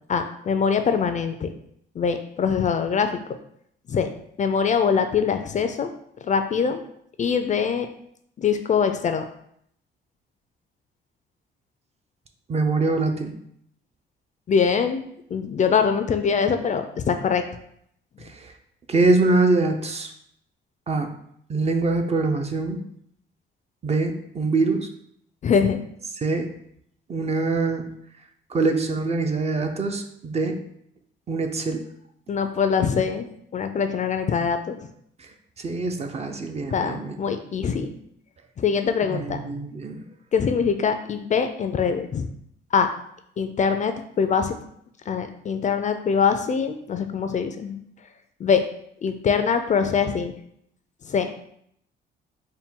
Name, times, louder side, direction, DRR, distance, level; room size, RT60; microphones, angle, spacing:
voice 1, 0.1-1.5 2.0-3.1 3.9-4.1 4.4-5.9 6.2-6.8 7.2-7.9 8.4-9.2 14.5-15.0 15.3-17.4 25.4-25.8 32.3-33.3 33.5-34.8 36.7-37.9 38.6-39.4 40.3-42.3 42.7-42.9 43.4-44.6 45.1-47.8 48.4-48.6 49.0-50.3 51.1-51.3, left 6 dB, 40° left, 8 dB, 0.4 m, -23 dB
voice 2, 12.5-13.3 18.2-18.5 18.9-20.1 20.9-21.1 21.5-22.8 23.8-24.9 26.2-26.5 27.1-27.9 28.5-30.6 31.3-31.8 35.6-37.3 39.0-40.0, right 3 dB, 35° right, 5 dB, 0.5 m, -24 dB
4.2 x 2.2 x 3.6 m, 0.70 s
cardioid pair, 90°, 20 cm